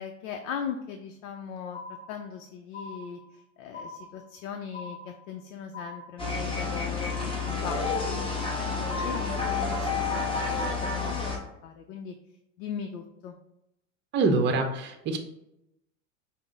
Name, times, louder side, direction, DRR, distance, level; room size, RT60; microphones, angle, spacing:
voice 1, 0.0-10.3 10.7-11.2 11.6-12.1 12.6-13.4, left 7 dB, 85° left, 5 dB, 0.5 m, -39 dB
sound 1, 1.7-2.4 2.7-3.4 3.7-4.4 4.7-5.4 5.7-6.4, left 3 dB, 40° left, 1.3 m, -43 dB
sound 2, 6.2-11.4, left 4 dB, 15° left, 0.9 m, -29 dB
voice 2, 14.1-15.2, right 3 dB, 30° right, 5 dB, 0.6 m, -25 dB
5.6 x 2.0 x 3.7 m, 0.84 s
supercardioid pair, 115°, 39 cm